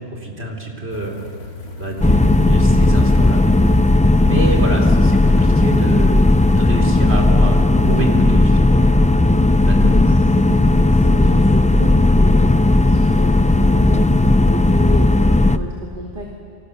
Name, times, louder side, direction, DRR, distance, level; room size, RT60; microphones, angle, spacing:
voice 1, 0.1-1.2 1.8-3.4 4.2-6.2 6.6-9.1 9.6-9.9, right 2 dB, 75° right, 1 dB, 3.9 m, -26 dB
sound 1, 0.9-6.6, left 3 dB, 80° left, 2.6 m, -38 dB
sound 2, 2.0-15.6, left 2 dB, 15° left, 0.3 m, -14 dB
voice 2, 2.0-2.4 9.8-16.3, equal, 50° right, -1 dB, 2.5 m, -31 dB
28.5 x 26.0 x 6.7 m, 2.4 s
omnidirectional pair, 1.1 m